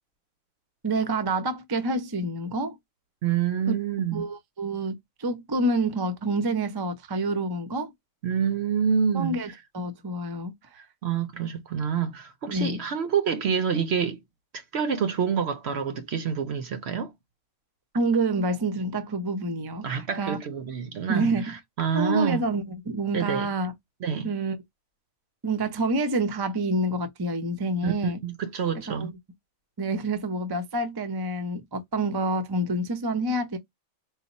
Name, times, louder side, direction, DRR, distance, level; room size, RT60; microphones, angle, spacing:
voice 1, 0.8-2.8 3.7-3.8 4.1-7.9 9.1-10.5 12.5-12.8 17.9-20.4 21.1-21.5 21.9-23.7 24.2-24.6 25.4-28.2 28.9-29.1 29.8-33.6, right 2 dB, 30° right, 0.4 m, -28 dB
voice 2, 3.2-4.3 8.2-9.4 11.0-14.2 14.5-17.1 19.8-22.4 23.1-23.5 24.0-24.3 27.8-29.1, right 7 dB, 60° right, 0.8 m, -27 dB
4.1 x 2.0 x 4.0 m
omnidirectional pair, 1.5 m